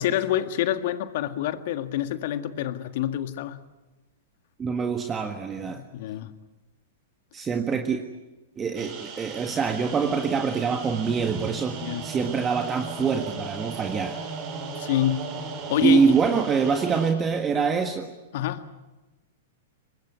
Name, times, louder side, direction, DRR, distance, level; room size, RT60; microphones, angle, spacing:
voice 1, 0.0-3.6 5.7-6.3 11.8-12.1 14.8-15.3 15.7-16.1 18.3-18.7, left 12 dB, 60° left, 1.7 m, -27 dB
voice 2, 4.6-5.8 7.3-8.0 8.6-14.2 15.8-18.1, right 5 dB, 20° right, 1.7 m, -25 dB
sound 1, 8.8-17.1, right 5 dB, 40° right, 6.0 m, -36 dB
24.5 x 20.5 x 9.4 m
hypercardioid pair, 120°, 0 cm